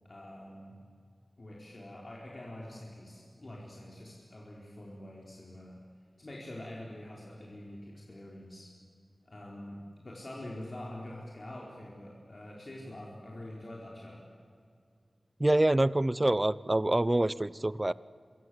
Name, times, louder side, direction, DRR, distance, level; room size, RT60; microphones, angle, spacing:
voice 1, 0.0-0.8 1.4-5.8 6.2-8.7 9.3-14.2, left 1 dB, 50° left, -3 dB, 4.8 m, -45 dB
voice 2, 15.4-17.9, right 1 dB, 25° right, 18 dB, 0.6 m, -26 dB
27.0 x 24.5 x 8.0 m, 2.2 s
wide cardioid pair, 70°, 0 cm